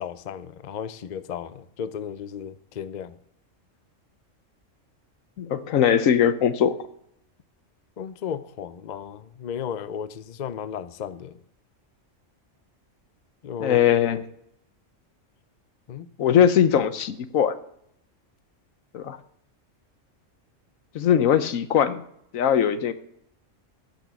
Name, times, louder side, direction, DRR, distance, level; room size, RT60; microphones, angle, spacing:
voice 1, 0.0-3.2 8.0-11.4 13.4-13.8 15.9-16.1, left 8 dB, 50° left, 0.6 m, -34 dB
voice 2, 5.4-6.7 13.6-14.3 16.2-17.6 18.9-19.2 20.9-22.0 22.3-22.9, left 9 dB, 85° left, 1.2 m, -20 dB
13.5 x 6.1 x 7.0 m
omnidirectional pair, 1.3 m